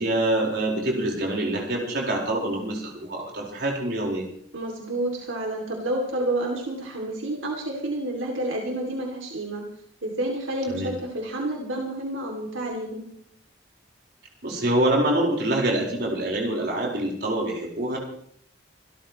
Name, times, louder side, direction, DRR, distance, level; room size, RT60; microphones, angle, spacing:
voice 1, 0.0-4.2 10.7-10.9 14.4-18.0, right 1 dB, 55° right, -1 dB, 4.7 m, -25 dB
voice 2, 4.5-9.6 10.0-13.1, right 1 dB, 85° right, 0 dB, 2.7 m, -29 dB
26.5 x 13.0 x 3.1 m, 0.65 s
head